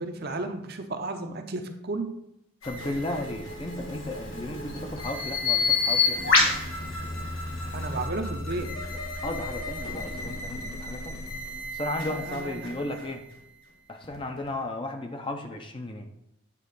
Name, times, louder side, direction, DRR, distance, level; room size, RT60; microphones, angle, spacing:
voice 1, 0.0-2.1 7.7-8.7 12.1-12.6, right 2 dB, 45° right, 5 dB, 0.7 m, -33 dB
sound 1, 2.6-14.5, equal, 75° left, 1.7 m, -37 dB
voice 2, 2.6-6.5 9.2-11.2 11.7-13.2 13.9-16.1, left 1 dB, 25° left, 5 dB, 0.6 m, -34 dB
Bird vocalization bird call bird song, 3.8-8.1, left 5 dB, 55° left, 1.9 m, -27 dB
8.4 x 3.7 x 5.4 m, 0.80 s
head